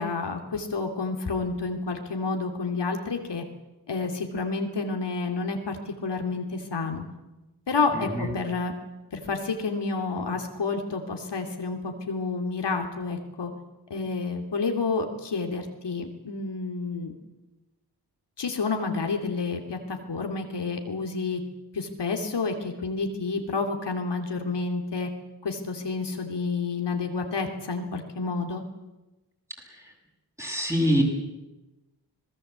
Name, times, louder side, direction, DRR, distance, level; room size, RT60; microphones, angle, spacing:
voice 1, 0.0-3.4 3.9-7.0 7.7-8.7 9.1-13.5 13.9-17.1 18.4-21.4 21.7-25.1 25.4-28.6, left 4 dB, 80° left, 4 dB, 2.9 m, -29 dB
voice 2, 8.0-8.3 30.4-31.0, equal, 5° right, 0 dB, 7.5 m, -24 dB
26.0 x 19.5 x 8.2 m, 1.1 s
wide cardioid pair, 90°, 41 cm